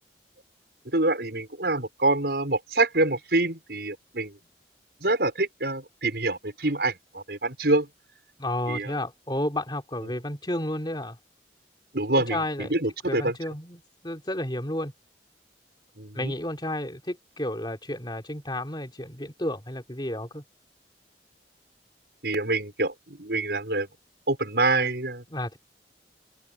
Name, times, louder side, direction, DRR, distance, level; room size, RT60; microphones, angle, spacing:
voice 1, 0.8-4.4 5.0-7.9 8.7-9.0 11.9-13.4 16.0-16.3 22.2-23.9 24.3-25.2, right 2 dB, 65° right, 5.9 m, -26 dB
voice 2, 8.4-11.2 12.1-12.7 13.1-14.9 16.1-20.4 25.3-25.6, left 1 dB, 25° left, 3.5 m, -32 dB
open air
head